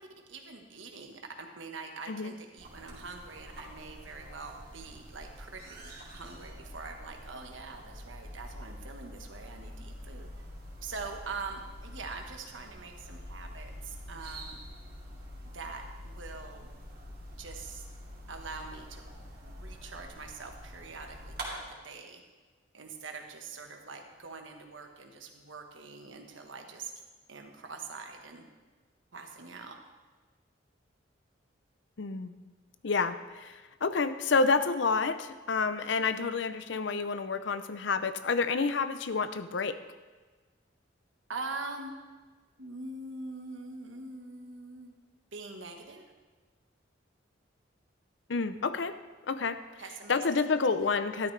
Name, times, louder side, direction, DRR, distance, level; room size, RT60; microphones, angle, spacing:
voice 1, 0.3-5.6 6.0-10.3 10.8-14.6 15.4-16.7 17.4-17.9 18.3-19.1 19.6-22.2 22.7-26.9 27.3-28.4 29.1-29.8 36.1-36.3 41.3-41.9 42.6-44.9 45.3-46.0 49.8-50.4, right 4 dB, 80° right, 3 dB, 1.3 m, -43 dB
sound 1, 2.6-21.5, equal, 55° right, 2.7 m, -46 dB
voice 2, 32.0-32.4 32.8-39.8 48.3-49.0 49.3-49.6 50.1-51.3, left 4 dB, 70° left, 11 dB, 0.6 m, -29 dB
13.0 x 12.5 x 3.3 m, 1.3 s
head